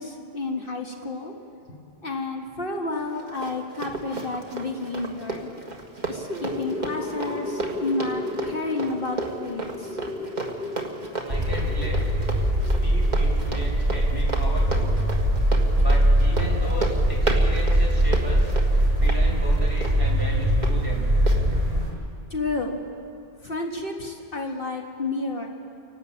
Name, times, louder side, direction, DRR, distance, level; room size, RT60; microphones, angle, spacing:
voice 1, 0.0-1.3 1.7-5.5 6.1-9.9 22.3-22.8 23.4-25.5, left 3 dB, 60° left, 1 dB, 1.8 m, -31 dB
Run, 2.9-20.7 21.3-21.4, right 3 dB, 45° right, 2.0 m, -34 dB
sound 1, 6.0-13.3, left 2 dB, 5° right, 1.2 m, -35 dB
voice 2, 11.3-12.0 12.8-15.0 15.8-18.5 19.0-21.1, left 1 dB, 20° right, -3 dB, 4.8 m, -35 dB
sound 2, 11.3-21.9, right 1 dB, 70° right, 6.6 m, -21 dB
29.0 x 12.0 x 8.7 m, 2.6 s
omnidirectional pair, 1.0 m